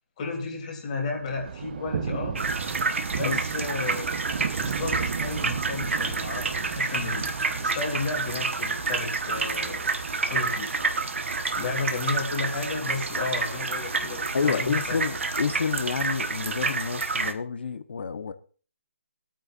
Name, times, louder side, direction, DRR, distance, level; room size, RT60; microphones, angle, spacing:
voice 1, 0.2-2.4 3.2-4.1 4.5-7.3 7.6-9.9 10.3-10.8 11.6-15.0, left 4 dB, 35° left, 2.9 m, -33 dB
Thunder, 1.2-17.1, right 6 dB, 45° right, 0.8 m, -37 dB
sound 1, 2.4-17.3, right 4 dB, 65° right, 1.2 m, -29 dB
voice 2, 14.3-18.3, left 6 dB, 55° left, 1.0 m, -29 dB
21.5 x 9.0 x 2.5 m
figure-of-eight pair, 155°, 7 cm